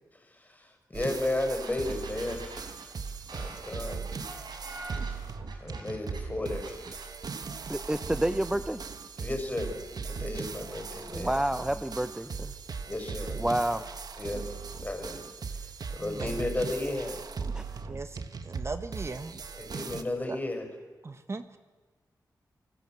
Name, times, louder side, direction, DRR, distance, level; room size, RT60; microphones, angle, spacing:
voice 1, 0.1-2.8 3.3-4.0 5.6-6.8 9.2-11.4 12.8-13.4 14.2-14.5 14.8-15.2 15.5-17.2 19.5-20.7, left 2 dB, 25° left, 5 dB, 5.8 m, -34 dB
sound 1, 0.9-20.0, right 5 dB, 65° right, 1.5 m, -39 dB
sound 2, 1.2-1.3 1.6-6.2 6.6-7.1, right 3 dB, 85° right, 4.8 m, -45 dB
voice 2, 7.7-8.8 11.1-12.5 13.4-13.8 17.5-17.6, right 1 dB, 10° right, 11 dB, 0.8 m, -29 dB
voice 3, 16.0-16.4 17.9-19.3 21.0-21.6, right 3 dB, 40° right, 9 dB, 1.4 m, -38 dB
28.5 x 19.5 x 7.7 m, 1.3 s
wide cardioid pair, 85°, 7 cm